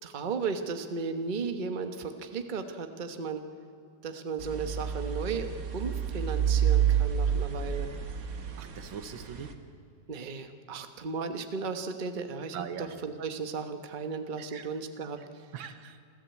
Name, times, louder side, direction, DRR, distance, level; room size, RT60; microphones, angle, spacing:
voice 1, 0.0-3.4 4.0-7.9 10.1-15.2, right 5 dB, 30° right, 7 dB, 1.1 m, -35 dB
sound 1, 4.4-9.5, right 8 dB, 50° right, 1.6 m, -29 dB
voice 2, 8.6-9.5 12.5-12.9 14.4-14.7 15.5-16.0, right 8 dB, 80° right, 9 dB, 1.9 m, -40 dB
27.0 x 13.5 x 8.4 m, 2.4 s
omnidirectional pair, 2.1 m